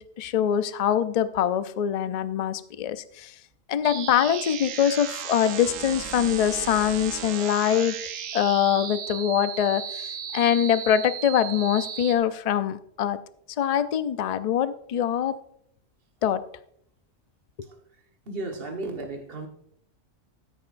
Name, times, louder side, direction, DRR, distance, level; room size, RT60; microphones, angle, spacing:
voice 1, 0.0-3.3 3.7-8.0 8.3-13.2 13.6-15.4 16.2-16.4, left 9 dB, 75° left, 0.3 m, -24 dB
sound 1, 3.8-12.1, right 8 dB, 80° right, 1.1 m, -35 dB
voice 2, 18.3-19.5, right 2 dB, 45° right, 1.5 m, -34 dB
13.5 x 9.9 x 2.5 m
omnidirectional pair, 1.3 m